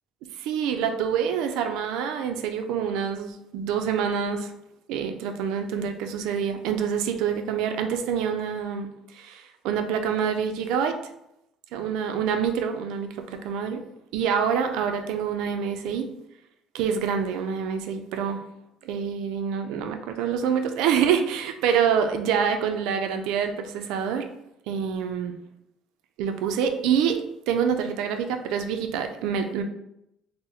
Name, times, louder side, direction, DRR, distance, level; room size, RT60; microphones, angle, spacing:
voice 1, 0.4-4.5 4.9-11.0 11.7-13.8 14.1-16.1 16.7-18.4 18.8-24.3 24.7-25.4 26.2-27.2 27.5-29.6, right 7 dB, 85° right, 6 dB, 0.3 m, -26 dB
3.9 x 2.0 x 2.7 m, 0.81 s
cardioid pair, 165°, 0 cm